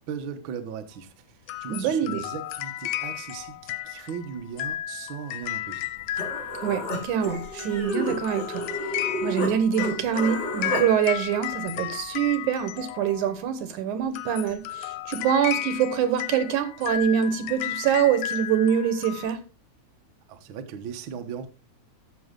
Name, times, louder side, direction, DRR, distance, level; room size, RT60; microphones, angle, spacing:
voice 1, 0.1-5.9 20.3-21.5, right 7 dB, 60° right, 1.3 m, -38 dB
sound 1, 1.5-13.4 14.0-19.3, left 13 dB, 80° left, 2.0 m, -34 dB
voice 2, 1.7-2.2 6.6-8.7 9.2-19.4, right 8 dB, 80° right, 2.6 m, -25 dB
Human voice, 5.8-5.9 6.2-9.5 9.8-10.8, equal, 35° left, 3.1 m, -31 dB
13.0 x 6.1 x 3.7 m
omnidirectional pair, 3.5 m